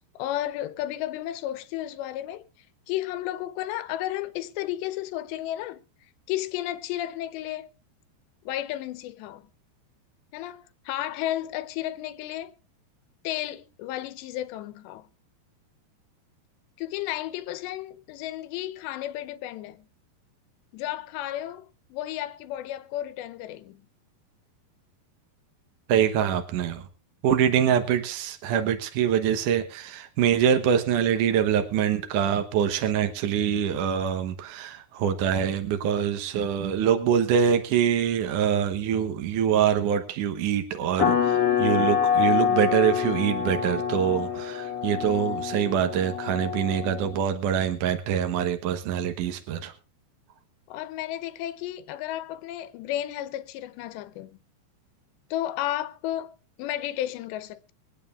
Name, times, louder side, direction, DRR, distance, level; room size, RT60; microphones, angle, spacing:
voice 1, 0.2-2.5 2.9-5.8 6.3-7.7 8.5-9.5 10.3-12.6 13.2-15.1 16.8-19.9 20.7-23.8 50.7-54.4 55.3-57.7, left 13 dB, 85° left, 3.0 m, -33 dB
voice 2, 25.9-26.8 27.2-49.7, right 8 dB, 70° right, 2.1 m, -24 dB
sound 1, 41.0-47.2, left 8 dB, 55° left, 3.0 m, -26 dB
24.0 x 9.2 x 2.5 m
omnidirectional pair, 4.9 m